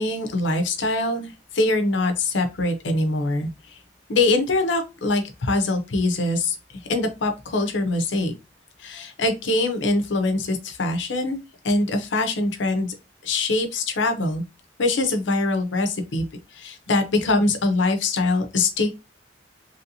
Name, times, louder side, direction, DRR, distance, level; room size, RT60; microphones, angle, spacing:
voice 1, 0.0-3.8 4.1-6.6 6.9-8.3 8.8-11.4 11.6-12.9 13.2-14.4 14.8-16.2 16.5-18.9, left 2 dB, 80° left, 6 dB, 0.6 m, -23 dB
3.1 x 2.8 x 2.6 m, 0.25 s
head